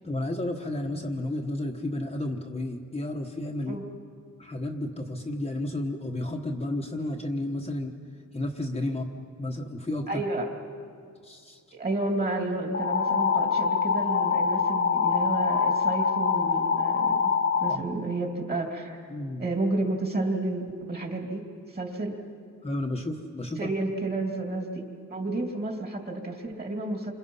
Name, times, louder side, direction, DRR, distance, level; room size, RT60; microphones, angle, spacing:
voice 1, 0.0-3.8 4.4-7.9 8.3-9.1 9.4-10.2 11.2-11.6 17.7-17.8 19.1-19.5 22.6-23.7, left 1 dB, 20° left, 1 dB, 1.2 m, -32 dB
voice 2, 10.1-10.5 11.7-17.3 17.6-19.0 19.4-21.4 21.7-22.1 23.6-24.8 25.1-27.1, right 2 dB, 30° right, 2 dB, 2.9 m, -31 dB
sound 1, 12.7-17.8, left 6 dB, 40° left, 1.0 m, -24 dB
29.0 x 26.0 x 5.6 m, 2.2 s
wide cardioid pair, 165°, 32 cm